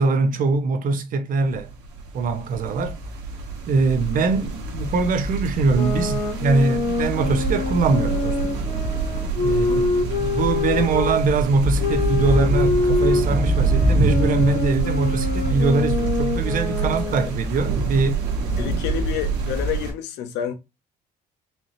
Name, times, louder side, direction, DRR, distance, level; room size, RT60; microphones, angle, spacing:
voice 1, 0.0-1.7 2.1-3.0 3.7-8.6 9.4-18.3, right 3 dB, 55° right, 0.8 m, -22 dB
sound 1, 1.5-19.9, right 3 dB, 80° right, 1.3 m, -25 dB
sound 2, 5.6-11.2 11.8-17.4, left 3 dB, 55° left, 1.7 m, -25 dB
voice 2, 9.5-9.9 16.8-17.1 18.6-20.5, left 10 dB, 85° left, 0.7 m, -30 dB
4.2 x 2.6 x 3.1 m
cardioid pair, 110°, 17 cm